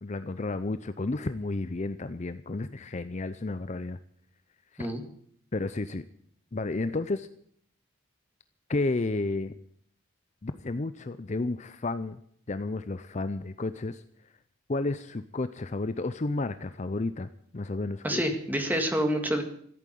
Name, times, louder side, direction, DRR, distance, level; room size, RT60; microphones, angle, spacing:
voice 1, 0.0-4.0 4.7-4.9 5.5-6.0 6.5-7.3 8.7-9.5 10.4-12.2 12.5-14.0 14.7-18.3, left 2 dB, 35° left, 12 dB, 0.5 m, -32 dB
voice 2, 18.0-19.4, equal, 10° right, 5 dB, 1.9 m, -27 dB
14.5 x 8.7 x 9.3 m, 0.64 s
head